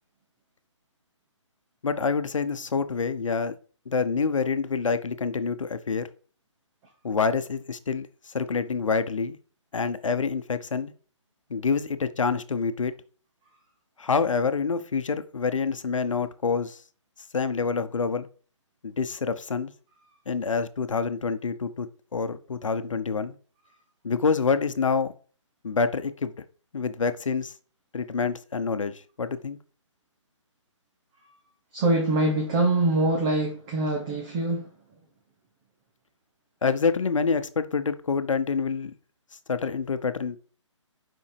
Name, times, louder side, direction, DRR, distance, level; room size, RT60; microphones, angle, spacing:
voice 1, 1.8-3.5 3.9-6.1 7.0-8.1 8.3-9.4 9.7-10.9 11.5-12.9 14.0-16.8 17.3-18.3 18.8-19.7 20.3-21.9 22.1-23.4 24.0-25.1 25.6-26.3 26.7-27.5 27.9-29.6 36.6-38.9 39.5-40.4, left 5 dB, 80° left, 0.9 m, -27 dB
voice 2, 31.7-34.7, right 2 dB, 10° right, 0.6 m, -24 dB
5.9 x 5.6 x 4.6 m
hypercardioid pair, 170°, 16 cm